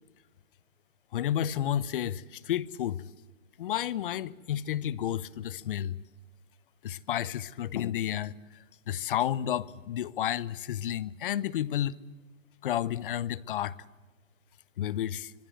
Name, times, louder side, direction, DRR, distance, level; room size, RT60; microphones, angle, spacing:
voice 1, 1.1-3.0 3.6-6.0 6.8-8.3 8.9-12.0 12.6-13.8 14.8-15.3, left 11 dB, 40° left, 1.0 m, -31 dB
26.0 x 20.0 x 7.9 m
hypercardioid pair, 140°, 39 cm